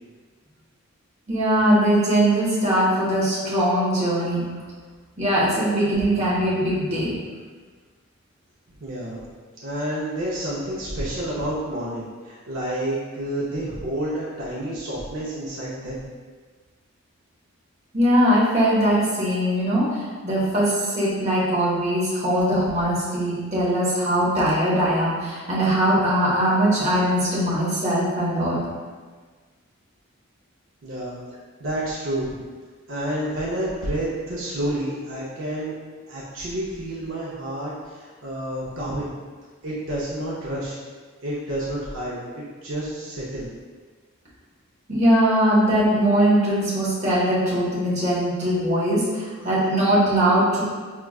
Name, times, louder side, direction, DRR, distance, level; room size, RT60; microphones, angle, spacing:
voice 1, 1.3-4.4 5.2-7.1 17.9-28.6 44.9-50.6, right 1 dB, 30° right, -7 dB, 0.8 m, -21 dB
voice 2, 8.8-9.2 9.6-16.0 30.8-31.2 31.6-32.4 32.9-35.7 36.1-39.2 39.6-40.8 41.2-43.5, right 1 dB, 60° right, -7 dB, 0.6 m, -29 dB
4.6 x 2.2 x 2.3 m, 1.5 s
head